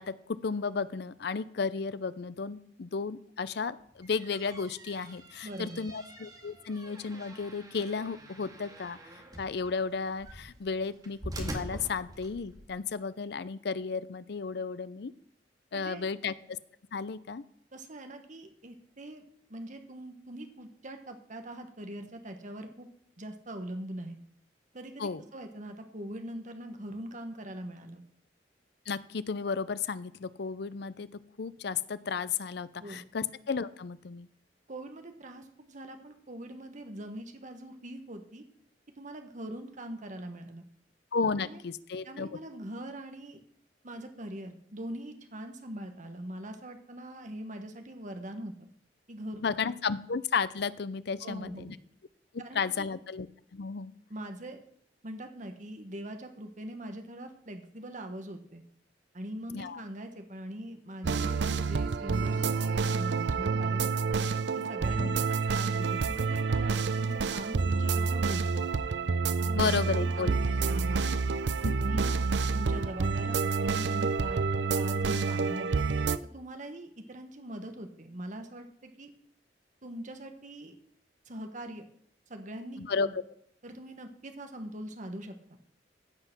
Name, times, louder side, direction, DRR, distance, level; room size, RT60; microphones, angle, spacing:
voice 1, 0.0-9.0 9.4-15.1 15.7-16.6 16.9-17.4 25.0-25.2 28.9-31.1 31.4-34.3 41.1-42.4 49.4-51.8 52.3-53.3 53.5-53.9 59.5-59.8 65.0-65.2 69.5-70.3 71.6-71.7 72.0-72.1 82.8-83.2, left 5 dB, 65° left, 16 dB, 0.6 m, -33 dB
sound 1, 3.8-12.7, right 1 dB, 20° right, 1.8 m, -45 dB
voice 2, 5.4-5.8 15.7-16.0 17.7-19.2 19.5-22.9 23.2-24.2 24.7-28.0 32.8-33.0 34.7-38.4 39.0-40.6 41.4-41.6 42.0-43.4 43.8-48.7 49.1-49.4 51.2-51.7 52.4-52.9 54.1-54.6 55.0-58.6 59.1-64.1 64.5-68.7 69.4-71.1 71.7-72.2 72.5-74.4 74.7-75.7 76.3-79.1 79.8-80.8 81.2-81.9 82.3-83.2 83.6-85.6, right 1 dB, 45° right, 6 dB, 1.4 m, -42 dB
sound 2, 61.0-76.2, right 4 dB, 75° right, 0.5 m, -28 dB
15.5 x 5.7 x 6.1 m, 0.64 s
head